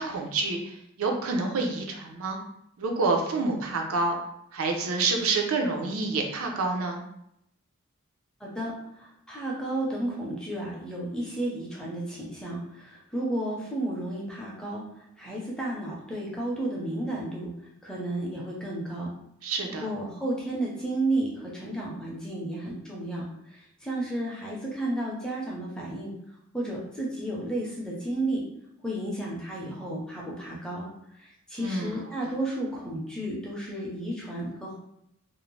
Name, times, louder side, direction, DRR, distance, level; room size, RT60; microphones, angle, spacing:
voice 1, 0.0-2.4 2.8-4.1 4.5-7.0 19.4-19.9 31.6-31.9, right 3 dB, 75° right, 3 dB, 0.5 m, -28 dB
voice 2, 8.4-17.5 17.8-19.1 19.8-26.1 26.5-28.4 28.8-30.9 31.2-34.7, right 1 dB, 5° left, -4 dB, 0.5 m, -32 dB
2.5 x 2.0 x 3.0 m, 0.78 s
head